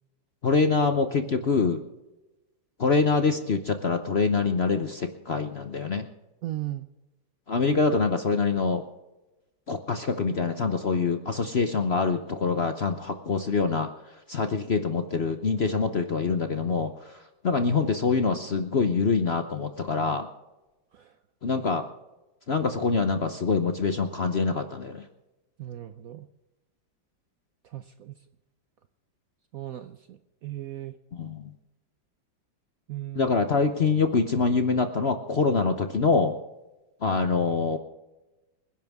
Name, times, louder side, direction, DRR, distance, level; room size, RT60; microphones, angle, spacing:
voice 1, 0.4-1.8 2.8-6.1 7.5-8.8 9.7-13.9 14.3-17.1 17.4-20.3 21.4-21.9 22.5-25.0 31.1-31.5 33.1-36.4 37.0-37.8, left 4 dB, 50° left, 7 dB, 0.8 m, -25 dB
voice 2, 6.4-6.9 20.9-21.2 25.6-26.3 27.6-28.1 29.5-31.0 32.9-33.3, right 14 dB, 65° right, 10 dB, 0.9 m, -37 dB
26.5 x 11.0 x 3.6 m, 1.0 s
omnidirectional pair, 2.1 m